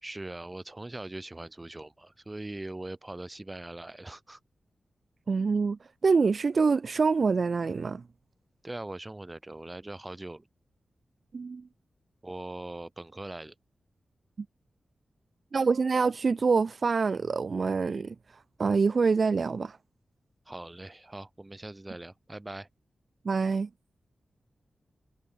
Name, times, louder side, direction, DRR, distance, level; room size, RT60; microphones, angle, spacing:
voice 1, 0.0-4.4 8.6-10.5 12.2-13.5 20.5-22.7, right 2 dB, 20° right, 2.1 m, -41 dB
voice 2, 5.3-8.0 11.3-11.6 15.5-19.8 23.3-23.7, right 4 dB, 55° right, 0.3 m, -26 dB
wide cardioid pair, 100°, 0 cm